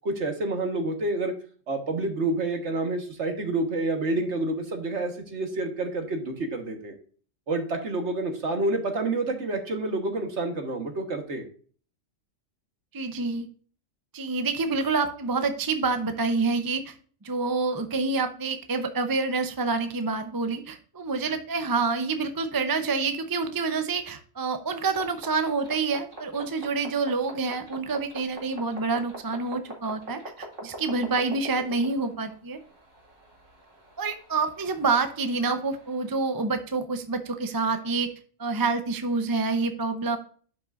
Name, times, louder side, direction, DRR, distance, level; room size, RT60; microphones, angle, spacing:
voice 1, 0.0-1.3 1.7-7.0 7.5-11.5, right 2 dB, 60° right, 4 dB, 1.6 m, -28 dB
voice 2, 12.9-13.5 14.1-16.9 17.2-32.6 34.0-38.1 38.4-40.2, right 4 dB, 20° right, 7 dB, 0.6 m, -27 dB
sound 1, 24.9-36.1, right 1 dB, 40° right, 2.3 m, -44 dB
11.0 x 6.0 x 2.5 m, 0.43 s
omnidirectional pair, 1.4 m